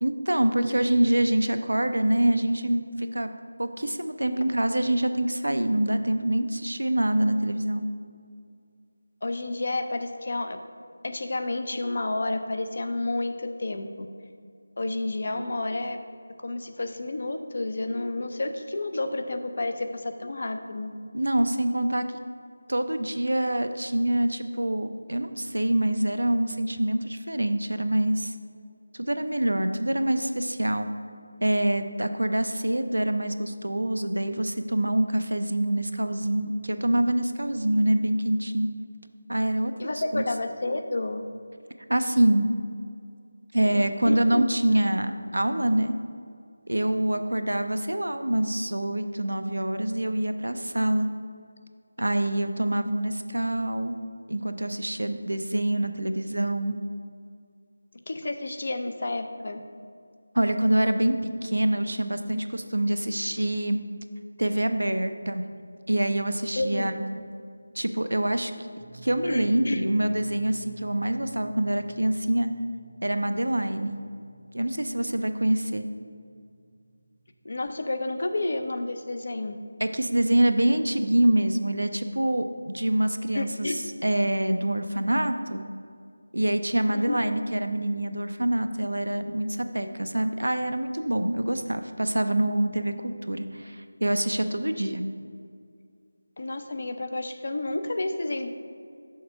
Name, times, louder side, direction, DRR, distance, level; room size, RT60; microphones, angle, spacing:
voice 1, 0.0-3.3 3.6-7.9 21.1-22.1 22.7-28.3 28.9-30.9 31.4-38.7 39.3-39.7 40.1-40.3 41.9-42.5 43.5-45.9 46.7-51.1 52.0-54.0 54.3-56.8 60.3-63.8 64.4-65.4 65.9-67.0 67.7-68.5 69.0-72.5 73.0-74.0 74.5-75.9 79.8-83.7 84.0-85.6 86.3-95.0, right 1 dB, 70° right, 8 dB, 0.5 m, -25 dB
voice 2, 9.2-10.6 11.0-14.1 14.8-16.0 16.4-20.9 39.8-41.2 43.6-44.5 58.1-59.6 66.5-66.9 69.2-69.9 77.4-79.6 83.3-83.8 86.9-87.3 96.4-98.5, left 2 dB, 45° left, 8 dB, 0.5 m, -30 dB
sound 1, 68.8-78.7, right 4 dB, 20° left, 0.8 m, -51 dB
6.5 x 4.2 x 5.7 m, 2.3 s
figure-of-eight pair, 165°, 0 cm